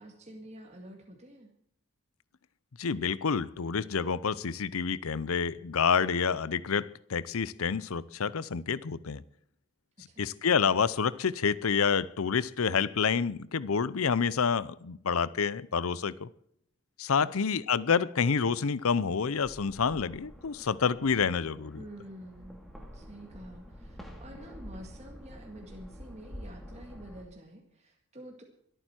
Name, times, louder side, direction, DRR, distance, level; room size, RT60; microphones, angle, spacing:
voice 1, 0.0-1.5 10.0-10.3 17.2-17.5 19.9-20.0 21.7-22.6 22.9-28.4, right 1 dB, 30° right, 2.0 m, -48 dB
voice 2, 2.8-9.2 10.2-16.3 17.0-21.8, left 6 dB, 80° left, 0.6 m, -28 dB
sound 1, 19.4-27.2, equal, ahead, 2.3 m, -48 dB
24.0 x 9.2 x 4.4 m
head